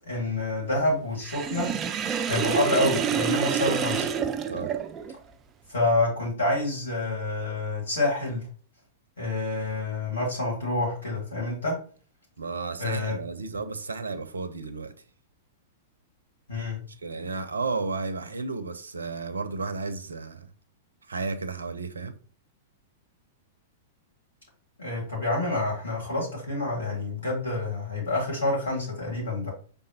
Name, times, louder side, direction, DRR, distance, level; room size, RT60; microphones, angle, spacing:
voice 1, 0.1-1.7 2.3-4.1 5.7-8.4 9.2-11.8 12.8-13.2 16.5-16.8 24.8-29.5, left 2 dB, 70° left, 2.0 m, -28 dB
Sink (filling or washing), 1.2-5.2, right 7 dB, 25° right, 0.4 m, -28 dB
voice 2, 12.4-14.9 17.0-20.5 21.1-22.2, right 4 dB, 75° right, 0.5 m, -33 dB
5.1 x 3.4 x 2.8 m
figure-of-eight pair, 100°, 0 cm